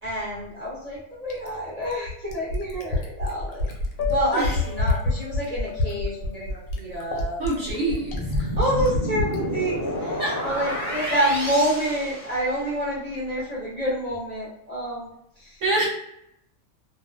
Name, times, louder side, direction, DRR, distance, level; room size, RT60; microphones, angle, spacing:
voice 1, 0.0-3.7 4.1-7.4 8.6-15.1 15.4-15.6, right 1 dB, 45° right, -7 dB, 0.5 m, -28 dB
Fill (with liquid), 1.3-9.4 10.7-10.8, left 2 dB, 70° left, 0.9 m, -27 dB
Piano, 3.9-9.9, left 11 dB, 90° left, 1.1 m, -37 dB
voice 2, 4.2-4.6 7.4-8.5 10.2-10.4 11.0-11.1 15.6-15.9, right 2 dB, 65° right, -5 dB, 0.9 m, -27 dB
sound 1, 8.1-12.9, left 1 dB, 15° left, 0.6 m, -30 dB
2.4 x 2.2 x 2.4 m, 0.78 s
omnidirectional pair, 1.6 m